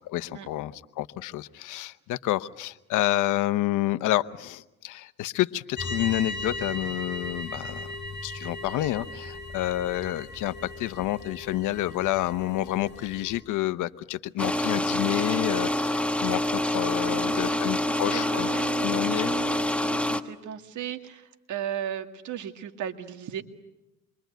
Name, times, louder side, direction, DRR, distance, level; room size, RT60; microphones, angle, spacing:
voice 1, 0.1-7.9 8.2-18.5 18.8-19.3, left 15 dB, 90° left, 15 dB, 0.9 m, -29 dB
sound 1, 5.8-13.4, left 2 dB, 40° left, 6.2 m, -38 dB
sound 2, 14.4-20.2, left 1 dB, 5° left, 1.4 m, -26 dB
voice 2, 17.1-23.4, right 9 dB, 75° right, 7 dB, 2.1 m, -37 dB
27.5 x 23.5 x 9.3 m, 0.95 s
cardioid pair, 90°, 30 cm